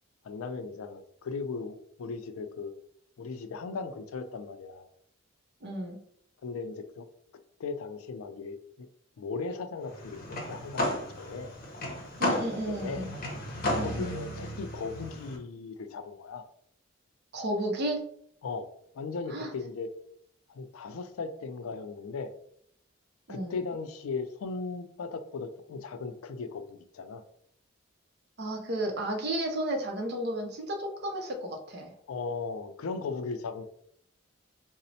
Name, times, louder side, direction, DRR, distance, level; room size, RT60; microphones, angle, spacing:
voice 1, 0.2-2.7 3.2-4.9 6.4-7.1 7.6-8.9 9.2-10.2 10.5-11.5 12.5-13.1 13.8-16.4 18.4-18.7 18.9-19.9 20.5-22.3 23.3-27.2 32.1-33.6, left 4 dB, 90° left, 9 dB, 0.4 m, -37 dB
voice 2, 5.6-6.0 12.2-13.1 13.7-14.1 17.3-18.0 19.3-19.5 23.3-23.6 28.4-31.9, right 1 dB, 50° right, 2 dB, 0.6 m, -33 dB
sound 1, 9.9-15.4, left 1 dB, 45° left, 0.7 m, -34 dB
4.0 x 2.0 x 2.7 m, 0.67 s
head